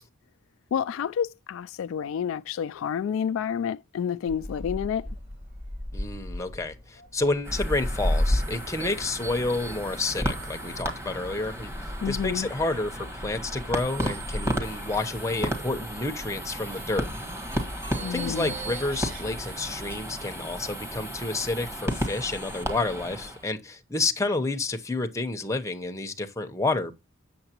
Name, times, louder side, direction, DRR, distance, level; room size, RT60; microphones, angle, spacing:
voice 1, 0.7-5.1 12.0-12.5 18.0-18.5, left 7 dB, 70° left, 0.3 m, -29 dB
Gull seagull, 4.3-20.0, left 1 dB, 40° right, 3.4 m, -36 dB
voice 2, 5.9-17.1 18.1-26.9, left 2 dB, 15° left, 0.8 m, -30 dB
sound 1, 7.4-23.5, right 1 dB, 15° right, 1.4 m, -34 dB
7.8 x 6.7 x 2.9 m
head